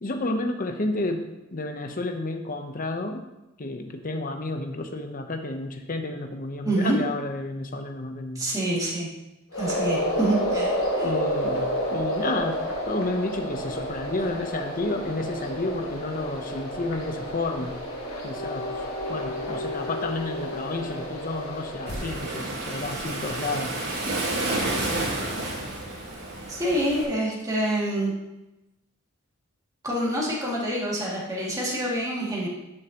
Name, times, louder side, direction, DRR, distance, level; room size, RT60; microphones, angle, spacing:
voice 1, 0.0-3.2 3.6-8.5 11.0-17.7 18.2-18.7 19.1-23.7, left 2 dB, 40° left, 6 dB, 0.8 m, -31 dB
voice 2, 8.3-9.1 9.6-11.1 26.5-28.1 29.8-32.5, right 1 dB, 15° right, -5 dB, 2.3 m, -26 dB
sound 1, 9.5-21.9, equal, 80° left, 1.7 m, -30 dB
Waves surf, 21.9-27.0, right 2 dB, 55° right, 2.6 m, -30 dB
11.0 x 6.6 x 3.0 m, 0.98 s
head